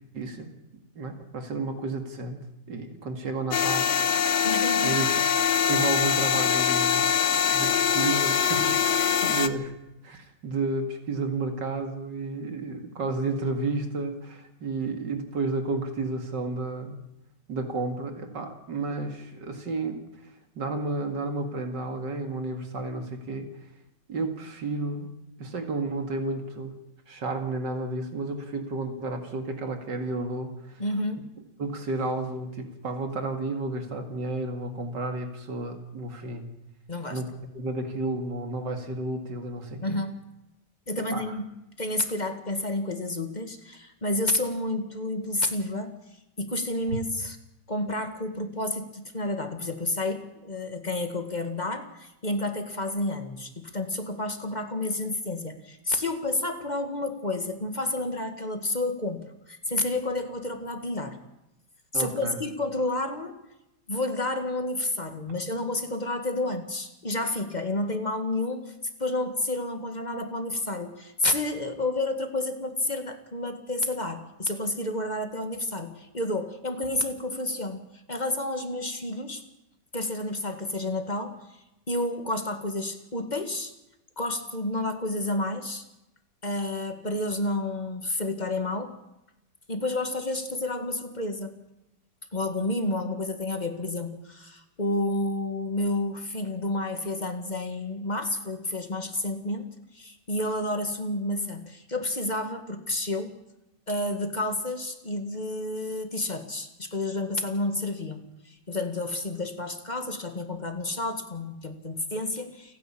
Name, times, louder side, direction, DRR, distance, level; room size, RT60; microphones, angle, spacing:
voice 1, 0.1-0.5 1.0-2.4 2.7-3.9 4.8-5.2 5.7-7.1 7.5-9.7 10.0-17.0 17.5-20.0 20.6-23.5 24.1-25.1 25.4-26.8 27.1-30.8 31.6-36.5 37.1-40.0 41.0-41.3 61.9-62.4, right 3 dB, 80° right, 6 dB, 2.8 m, -31 dB
sound 1, 3.5-9.5, left 8 dB, 50° left, 1.2 m, -23 dB
voice 2, 4.4-5.0 30.8-31.2 36.9-37.2 39.8-40.1 40.9-41.5 41.8-46.0 46.4-47.4 47.7-61.2 61.9-63.4 63.9-68.7 69.0-79.4 79.9-81.4 81.9-83.7 84.2-85.9 86.4-89.0 89.7-91.6 92.3-99.7 99.9-103.4 103.9-112.8, left 2 dB, 25° left, 7 dB, 2.0 m, -30 dB
29.0 x 10.5 x 8.7 m, 0.90 s
omnidirectional pair, 1.9 m